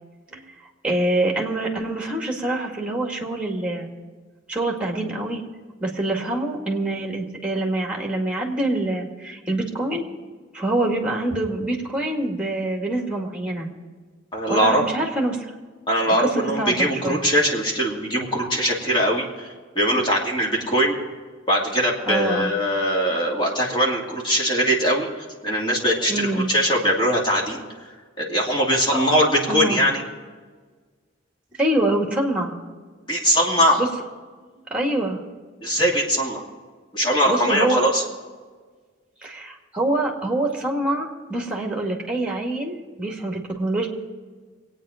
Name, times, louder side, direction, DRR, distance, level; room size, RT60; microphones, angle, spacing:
voice 1, 0.8-3.9 4.5-5.4 5.8-10.0 10.5-13.7 14.5-15.5 16.1-17.2 22.1-22.5 26.1-26.5 28.9-29.0 29.5-29.8 31.6-32.5 33.8-33.9 34.6-35.2 37.3-37.8 39.2-43.9, right 2 dB, 5° right, 1 dB, 2.2 m, -25 dB
voice 2, 14.3-14.8 15.9-20.9 21.5-25.1 25.4-27.6 28.2-30.0 33.1-33.8 35.6-36.4 36.9-38.0, equal, 25° left, -2 dB, 2.7 m, -21 dB
23.5 x 9.2 x 5.1 m, 1.5 s
head